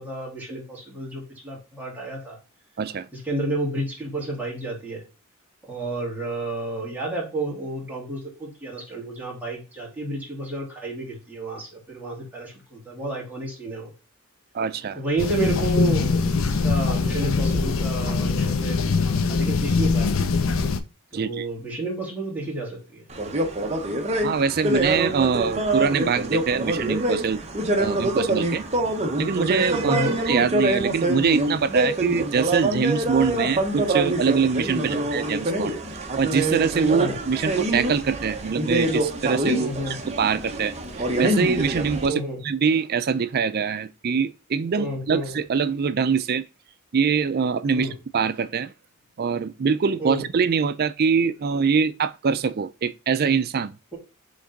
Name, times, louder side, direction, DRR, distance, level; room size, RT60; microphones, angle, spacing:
voice 1, 0.0-2.4 3.1-5.0 5.6-13.9 14.9-20.1 21.1-23.1 29.8-30.2 34.8-35.1 36.9-37.2 39.5-40.0 42.0-42.4 44.7-45.3 47.7-47.9 50.0-50.2, right 2 dB, 10° right, 2.3 m, -31 dB
voice 2, 14.5-15.0 21.1-21.5 24.2-27.4 27.8-28.7 29.2-30.0 30.3-35.7 36.2-46.4 46.9-47.9 48.1-48.7 49.2-53.7, right 6 dB, 45° right, 0.4 m, -24 dB
sound 1, 15.2-20.8, left 4 dB, 65° left, 0.6 m, -22 dB
sound 2, 23.1-42.1, right 1 dB, 30° right, 1.0 m, -25 dB
5.2 x 3.7 x 5.2 m
head